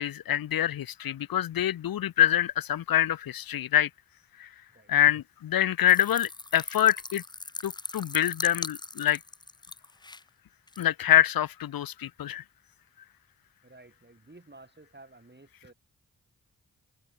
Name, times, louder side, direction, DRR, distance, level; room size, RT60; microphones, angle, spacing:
voice 1, 0.0-3.9 4.4-4.5 4.9-7.2 7.6-9.2 10.8-12.4, left 11 dB, 70° left, 0.6 m, -25 dB
sound 1, 5.9-10.2 10.7-10.8, left 3 dB, 10° left, 0.4 m, -39 dB
voice 2, 13.6-15.7, right 2 dB, 30° right, 7.1 m, -53 dB
open air
cardioid pair, 50°, 36 cm